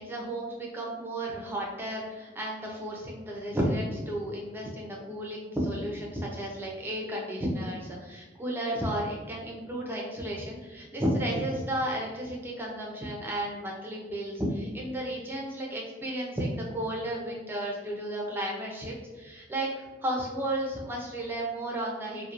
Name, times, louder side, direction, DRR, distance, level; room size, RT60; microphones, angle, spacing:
voice 1, 0.0-22.3, right 1 dB, 10° right, -2 dB, 0.5 m, -33 dB
2.9 x 2.0 x 2.4 m, 1.3 s
head